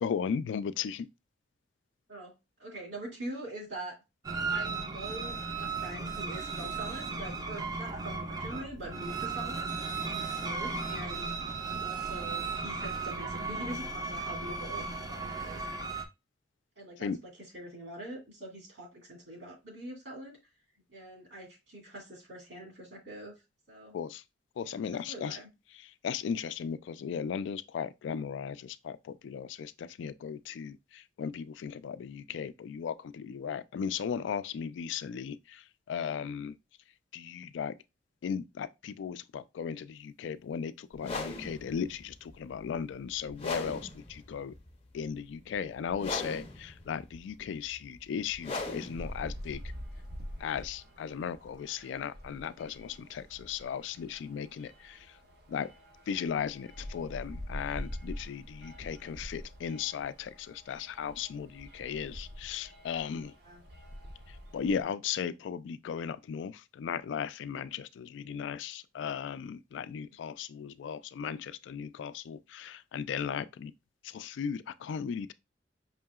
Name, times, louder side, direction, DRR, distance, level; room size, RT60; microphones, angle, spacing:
voice 1, 0.0-1.1 17.0-17.2 23.9-24.2 24.6-25.4 25.8-36.6 37.1-37.7 38.2-44.5 44.9-49.6 50.4-55.1 55.5-55.7 56.1-63.3 64.3-73.7 74.0-75.3, left 7 dB, 85° left, 0.3 m, -36 dB
voice 2, 2.6-4.0 4.5-9.7 10.1-11.3 11.7-15.7 16.8-20.4 20.9-23.3 23.7-24.0 24.6-25.5 63.4-63.6, right 1 dB, 80° right, 2.1 m, -44 dB
sound 1, 4.2-16.0, right 4 dB, 20° right, 0.4 m, -35 dB
sound 2, 40.9-50.8, left 2 dB, 35° left, 0.6 m, -40 dB
sound 3, 49.0-64.8, equal, 60° right, 0.7 m, -46 dB
5.5 x 2.8 x 2.3 m
head